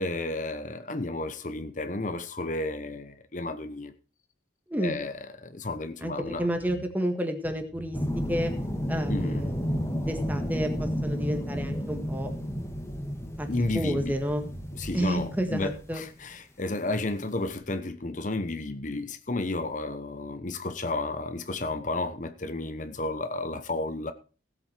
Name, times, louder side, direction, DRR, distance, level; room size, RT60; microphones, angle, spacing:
voice 1, 0.0-3.9 4.8-5.1 5.4-6.4 9.1-9.5 13.5-14.1 14.8-24.1, left 2 dB, 40° left, 1.0 m, -32 dB
voice 2, 6.0-8.0 8.3-8.5 8.9-9.7 10.0-12.3 13.4-13.5 13.7-14.4 14.9-16.0, equal, 10° right, 1.7 m, -30 dB
sound 1, 6.2-6.9 7.4-8.1 8.9-9.9 10.3-11.7 12.1-13.0 13.8-15.8, right 1 dB, 55° right, 1.7 m, -45 dB
sound 2, 7.9-16.1 17.5-17.6, equal, 15° left, 1.7 m, -32 dB
17.0 x 7.9 x 4.5 m
head